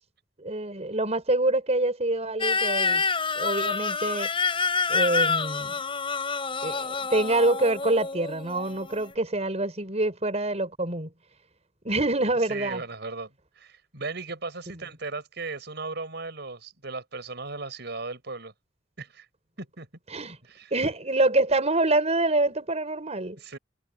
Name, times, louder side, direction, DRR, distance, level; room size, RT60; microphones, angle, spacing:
voice 1, 0.4-3.0 3.4-4.3 4.9-5.7 6.6-11.1 11.8-12.8 20.1-20.4 20.7-23.4, right 2 dB, 35° right, 5.3 m, -26 dB
sound 1, 2.4-9.1, left 4 dB, 30° left, 4.4 m, -27 dB
voice 2, 12.5-18.5 19.0-19.3 19.6-19.9 20.4-20.7 23.4-23.6, right 3 dB, 65° right, 6.0 m, -37 dB
head